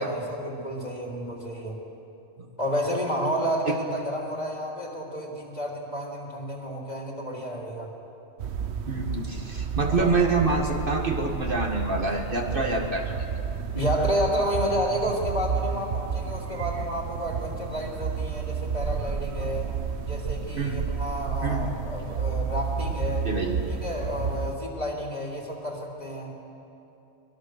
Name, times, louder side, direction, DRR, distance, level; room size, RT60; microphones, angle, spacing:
voice 1, 0.0-1.8 2.6-7.9 9.9-10.1 13.7-19.7 20.0-23.3 23.7-26.3, equal, 35° left, -1 dB, 3.5 m, -30 dB
sound 1, 8.4-24.6, right 6 dB, 70° right, 1.2 m, -31 dB
voice 2, 8.9-13.1 20.6-20.9 21.4-21.7 23.3-23.7, right 3 dB, 50° right, 2 dB, 2.0 m, -26 dB
24.0 x 21.5 x 6.6 m, 2.9 s
omnidirectional pair, 1.2 m